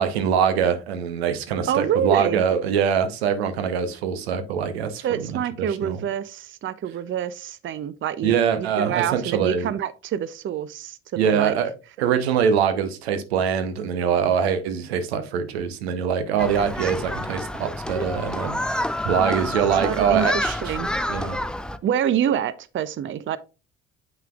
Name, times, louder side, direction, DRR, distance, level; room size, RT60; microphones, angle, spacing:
voice 1, 0.0-5.3 5.6-6.0 8.2-9.7 11.2-11.7 12.0-20.7 21.1-21.4, right 7 dB, 85° right, 0.8 m, -23 dB
voice 2, 1.7-2.4 5.0-11.6 19.2-19.5 19.8-20.9 21.8-23.4, right 9 dB, 40° right, 0.6 m, -27 dB
Human group actions, 16.4-21.8, left 1 dB, 5° left, 0.5 m, -28 dB
7.8 x 5.7 x 2.3 m
hypercardioid pair, 55°, 31 cm